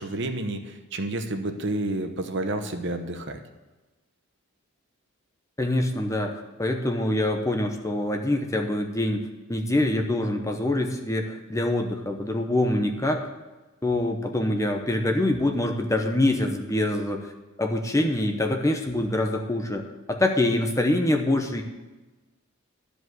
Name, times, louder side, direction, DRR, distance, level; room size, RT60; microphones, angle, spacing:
voice 1, 0.0-3.4, right 2 dB, 55° right, 6 dB, 0.9 m, -30 dB
voice 2, 5.6-9.2 9.5-13.2 13.8-17.3 17.6-19.8 20.1-21.6, left 1 dB, 15° left, 4 dB, 0.8 m, -25 dB
12.0 x 5.1 x 7.9 m, 1.2 s
head